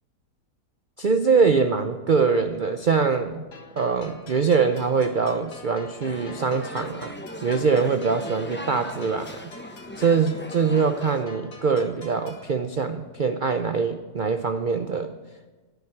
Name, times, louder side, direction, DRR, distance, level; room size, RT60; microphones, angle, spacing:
voice 1, 1.0-3.5 3.8-7.1 7.4-9.5 10.0-15.1, right 5 dB, 85° right, 8 dB, 0.4 m, -23 dB
sound 1, 3.5-12.5, left 4 dB, 90° left, 2.3 m, -47 dB
sound 2, 6.0-11.2, left 1 dB, 15° left, 0.3 m, -38 dB
10.5 x 9.3 x 9.5 m, 1.3 s
omnidirectional pair, 1.7 m